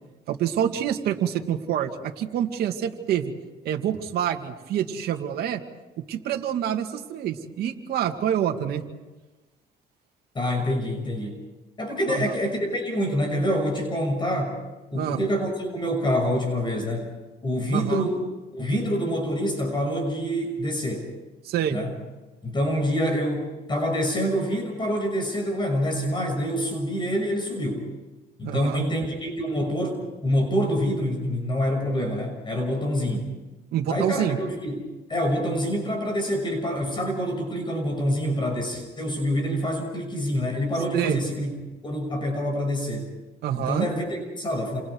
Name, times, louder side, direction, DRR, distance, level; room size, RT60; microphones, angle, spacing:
voice 1, 0.3-3.3 3.6-5.6 6.0-8.8 12.1-12.3 14.9-15.2 17.7-18.1 21.4-21.8 28.4-28.8 33.0-33.4 33.7-34.4 40.9-41.2 43.4-43.9, right 10 dB, 70° right, 3 dB, 2.3 m, -27 dB
voice 2, 10.3-11.4 11.8-14.6 14.9-17.1 17.4-18.2 18.5-21.1 21.7-21.9 22.4-27.9 28.4-33.3 33.9-34.8 35.1-41.5 41.8-43.1 43.5-44.8, equal, 30° left, 3 dB, 6.0 m, -26 dB
29.0 x 27.5 x 4.8 m, 1.2 s
cardioid pair, 110°, 17 cm